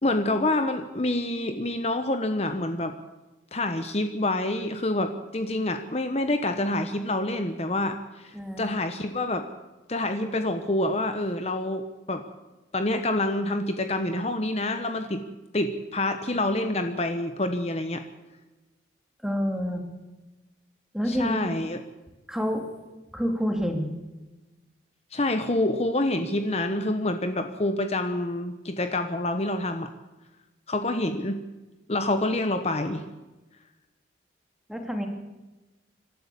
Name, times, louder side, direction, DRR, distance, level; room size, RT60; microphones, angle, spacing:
voice 1, 0.0-2.9 3.5-9.5 9.9-12.2 12.7-15.2 15.5-18.0 21.1-21.8 25.1-29.9 30.7-31.4 31.9-33.0, left 1 dB, 35° left, 7 dB, 1.0 m, -27 dB
voice 2, 8.3-8.7 19.2-19.8 20.9-21.4 22.3-22.7 23.1-23.9 34.7-35.1, equal, 5° right, 4 dB, 2.5 m, -27 dB
26.0 x 12.5 x 8.4 m, 1.1 s
head